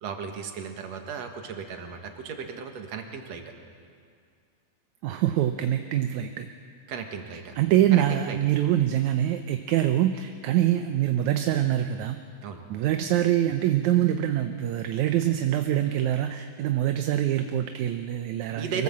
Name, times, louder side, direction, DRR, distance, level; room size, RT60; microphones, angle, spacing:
voice 1, 0.0-3.4 6.9-7.6 7.9-8.4 12.4-12.6 18.6-18.8, right 6 dB, 60° right, 4 dB, 2.7 m, -35 dB
voice 2, 5.0-6.5 7.6-12.2 12.7-18.8, right 12 dB, 75° right, 7 dB, 2.1 m, -24 dB
25.0 x 18.0 x 7.5 m, 2.3 s
omnidirectional pair, 3.5 m